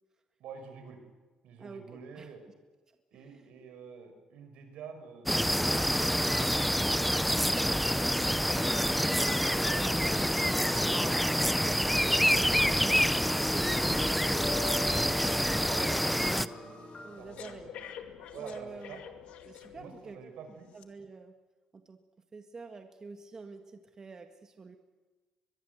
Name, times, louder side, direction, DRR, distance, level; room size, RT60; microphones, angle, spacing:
voice 1, 0.4-1.0 1.4-2.4 3.1-6.7 7.3-8.5 8.9-10.5 14.8-17.9 18.3-19.0 19.7-20.7, right 6 dB, 80° right, 6 dB, 5.5 m, -48 dB
voice 2, 1.6-2.3 3.1-3.5 7.4-7.7 17.0-17.7 18.3-19.0 19.4-20.3 20.7-21.3 21.7-22.0 22.3-24.8, right 4 dB, 30° right, 6 dB, 1.7 m, -47 dB
sound 1, 5.3-16.5, equal, ahead, 0.7 m, -27 dB
sound 2, 8.5-17.2, left 1 dB, 25° left, 5.0 m, -42 dB
Breathing, 13.7-20.2 20.7-20.8, left 9 dB, 75° left, 2.2 m, -50 dB
23.0 x 22.5 x 8.1 m, 1.3 s
cardioid pair, 115°, 2 cm